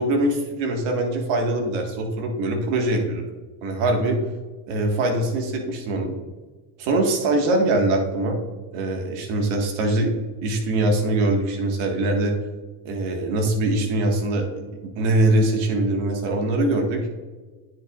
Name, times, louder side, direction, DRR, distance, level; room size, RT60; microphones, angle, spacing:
voice 1, 0.0-3.2 3.6-4.2 4.7-6.2 6.8-8.4 8.7-10.2 10.4-12.4 12.9-14.5 14.8-17.1, right 2 dB, 75° right, 2 dB, 1.8 m, -22 dB
9.4 x 8.1 x 2.4 m, 1.3 s
supercardioid pair, 70°, 47 cm